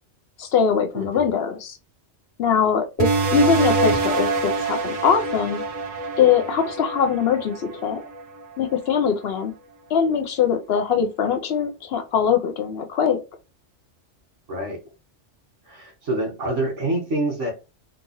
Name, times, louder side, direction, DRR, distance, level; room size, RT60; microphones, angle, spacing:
voice 1, 0.4-1.8 2.4-5.6 6.2-8.0 8.6-9.5 9.9-13.2, left 7 dB, 65° left, 0.8 m, -22 dB
voice 2, 0.9-1.3 14.5-14.8 15.6-17.5, right 1 dB, 85° right, 1.8 m, -26 dB
sound 1, 3.0-8.2, right 3 dB, 35° right, 0.7 m, -24 dB
3.9 x 2.4 x 3.0 m
omnidirectional pair, 1.2 m